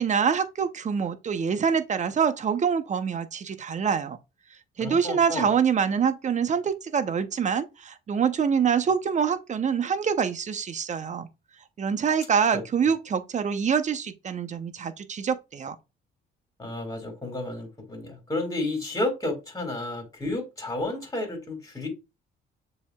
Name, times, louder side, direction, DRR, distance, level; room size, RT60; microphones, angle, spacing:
voice 1, 0.0-4.2 4.8-11.3 11.8-15.8, right 7 dB, 35° right, 0.6 m, -25 dB
voice 2, 4.8-5.5 12.5-12.6 16.6-21.9, left 2 dB, 15° left, 2.0 m, -31 dB
7.0 x 2.8 x 2.3 m
cardioid pair, 90°, 20 cm